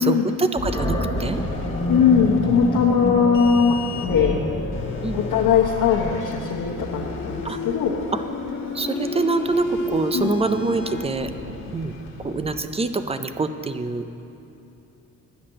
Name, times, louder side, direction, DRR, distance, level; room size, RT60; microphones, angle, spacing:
voice 1, 0.0-1.4 5.0-5.2 7.4-7.6 8.1-8.2 8.7-11.3 11.7-11.9 12.2-14.1, right 3 dB, 20° right, 9 dB, 0.4 m, -25 dB
Animal, 0.6-7.7, left 1 dB, 15° left, 1.3 m, -29 dB
sound 1, 1.2-12.6, left 3 dB, 40° left, 1.4 m, -32 dB
voice 2, 1.9-4.4 5.1-7.9 10.1-10.4, left 6 dB, 80° left, -3 dB, 1.0 m, -20 dB
10.0 x 5.8 x 7.6 m, 2.9 s
cardioid pair, 120°, 33 cm